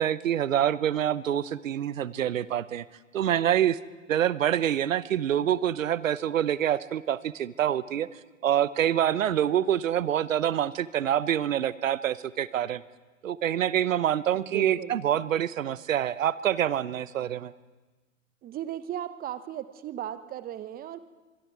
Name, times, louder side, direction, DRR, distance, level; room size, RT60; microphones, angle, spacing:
voice 1, 0.0-2.8 3.1-3.8 4.1-8.1 8.4-12.8 13.2-17.5, right 10 dB, 70° right, 18 dB, 1.0 m, -26 dB
voice 2, 14.3-15.0 18.4-21.0, right 11 dB, 20° right, 13 dB, 1.1 m, -36 dB
25.5 x 22.5 x 4.8 m, 1.2 s
figure-of-eight pair, 110°, 40 cm